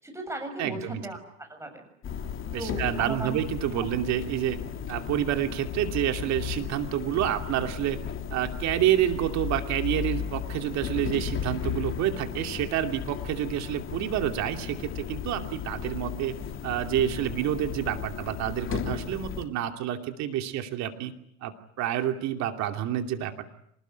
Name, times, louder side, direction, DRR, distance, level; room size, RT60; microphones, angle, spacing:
voice 1, 0.0-1.9 2.6-3.4, right 1 dB, 5° right, 6 dB, 7.5 m, -36 dB
voice 2, 0.6-1.0 2.5-4.6 4.9-8.0 8.3-16.3 16.6-21.1 21.4-23.5, right 11 dB, 45° right, 6 dB, 2.7 m, -28 dB
sound 1, 2.0-19.5, left 8 dB, 35° left, 3.3 m, -35 dB
26.5 x 19.5 x 9.3 m, 0.71 s
hypercardioid pair, 105°, 37 cm